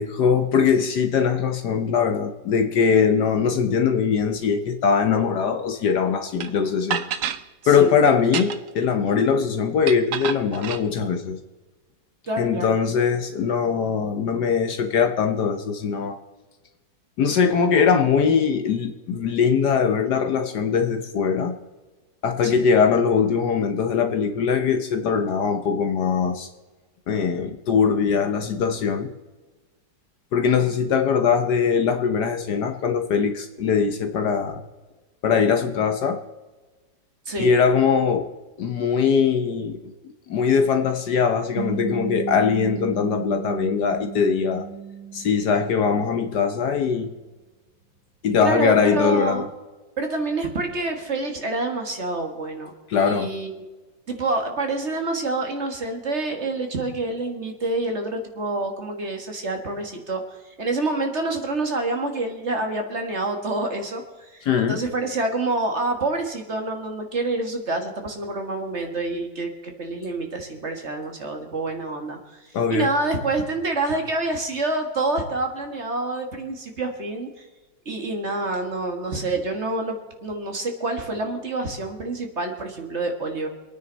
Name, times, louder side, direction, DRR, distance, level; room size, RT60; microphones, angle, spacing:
voice 1, 0.0-7.0 7.7-11.4 12.4-16.2 17.2-21.5 22.2-26.5 27.1-29.1 30.3-34.6 35.2-36.2 37.4-38.3 38.6-39.8 40.3-44.6 45.1-47.1 48.2-49.5 52.9-53.3 64.5-64.8 72.5-72.9, left 6 dB, 65° left, 6 dB, 1.4 m, -21 dB
sound 1, 6.4-6.5 6.9-7.4 8.2-8.8 9.9-10.8, right 9 dB, 60° right, 0.9 m, -28 dB
voice 2, 7.6-8.0 12.3-12.8 22.4-22.7 37.3-37.5 48.4-49.4 50.0-53.6 54.1-77.5 77.9-83.5, right 2 dB, 35° right, 4 dB, 2.1 m, -27 dB
sound 2, 41.6-46.2, right 9 dB, 15° right, 2.5 m, -34 dB
26.0 x 9.4 x 4.0 m, 1.2 s
omnidirectional pair, 2.0 m